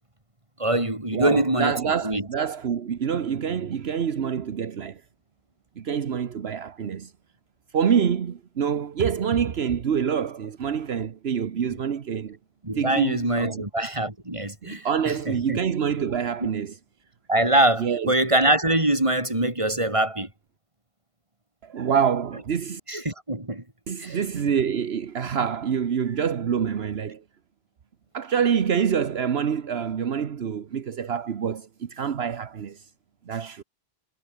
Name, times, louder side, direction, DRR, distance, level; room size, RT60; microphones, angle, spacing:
voice 1, 0.6-2.3 12.6-15.6 17.3-20.3 22.9-23.6 24.0-24.2, right 1 dB, 30° right, 3.9 m, -24 dB
voice 2, 1.1-5.0 5.8-7.1 7.7-12.4 12.8-13.6 14.6-16.8 17.8-18.1 21.6-22.8 23.9-27.2 28.1-32.8 33.3-33.6, right 7 dB, 70° right, 1.3 m, -26 dB
omnidirectional pair, 1.1 m